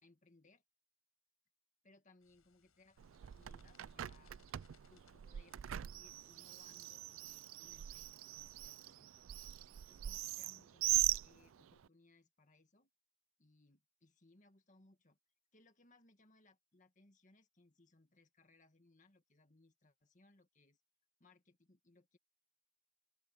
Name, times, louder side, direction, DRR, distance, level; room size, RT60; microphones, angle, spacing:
voice 1, 0.0-0.6 1.8-4.4 4.9-9.3 9.6-10.9 11.2-12.9 13.4-15.2 15.5-20.8 21.2-22.2, left 2 dB, 35° left, 1.9 m, -68 dB
sound 1, 2.2-8.4, left 7 dB, 80° left, 5.7 m, -74 dB
Bird, 3.0-11.9, right 15 dB, 65° right, 0.3 m, -41 dB
open air
head